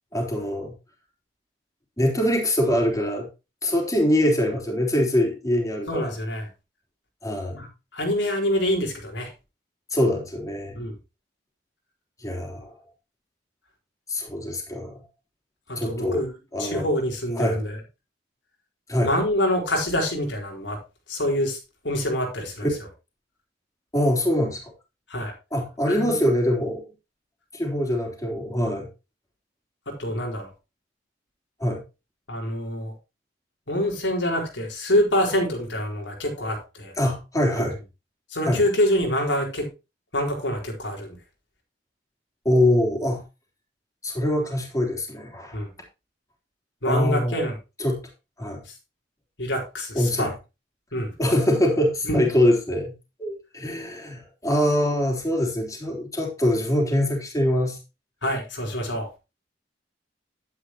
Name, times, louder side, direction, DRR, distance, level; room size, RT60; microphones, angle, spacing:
voice 1, 0.1-0.7 2.0-3.3 3.6-6.1 7.2-7.7 9.9-10.8 12.2-12.7 14.1-15.0 15.8-16.2 16.5-16.9 17.4-17.6 18.9-19.1 22.6-22.7 23.9-24.7 25.5-26.8 27.5-28.9 31.6-31.8 37.0-37.8 38.4-38.6 42.5-43.2 44.0-45.6 46.9-47.4 47.8-48.0 48.4-48.6 49.9-50.3 51.2-52.9 53.2-57.8, left 1 dB, 20° left, 1 dB, 3.4 m, -23 dB
voice 2, 5.9-6.5 7.5-7.7 7.9-9.3 10.7-10.9 15.7-16.3 16.6-17.8 19.0-20.8 21.1-21.6 21.8-22.7 25.1-25.3 25.9-26.2 29.9-30.5 32.3-32.9 33.7-36.9 37.6-37.7 38.3-39.7 40.1-41.2 45.5-45.7 46.8-47.5 49.4-50.3 50.9-51.1 52.0-52.2 58.2-59.1, left 1 dB, 85° left, 1 dB, 4.5 m, -26 dB
11.0 x 9.7 x 2.9 m, 0.27 s
head